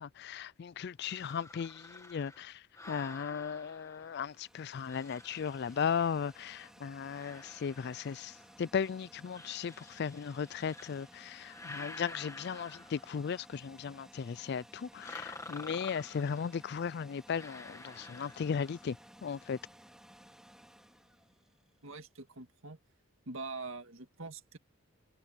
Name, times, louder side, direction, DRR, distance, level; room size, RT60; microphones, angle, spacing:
voice 1, 0.0-2.6 2.9-8.3 8.6-19.0 19.2-19.6, left 6 dB, 50° left, 0.3 m, -36 dB
sound 1, 1.1-4.4 4.9-6.4 7.0-8.6 9.3-11.1 11.4-13.4 15.0-16.6 17.3-18.9, left 2 dB, 15° left, 1.7 m, -50 dB
sound 2, 3.8-21.9, equal, 5° right, 4.3 m, -58 dB
voice 2, 21.8-22.8 23.3-24.6, right 3 dB, 65° right, 2.1 m, -44 dB
head